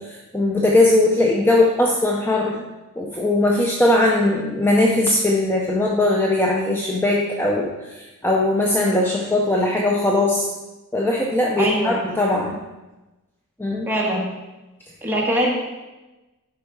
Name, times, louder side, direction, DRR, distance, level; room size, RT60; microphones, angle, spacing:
voice 1, 0.0-2.7 3.0-10.5 10.9-12.6 13.6-13.9, left 2 dB, 10° left, -1 dB, 0.6 m, -20 dB
voice 2, 11.6-12.0 13.9-14.3 15.0-15.5, right 1 dB, 10° right, -3 dB, 1.5 m, -22 dB
11.5 x 4.1 x 4.7 m, 1.1 s
head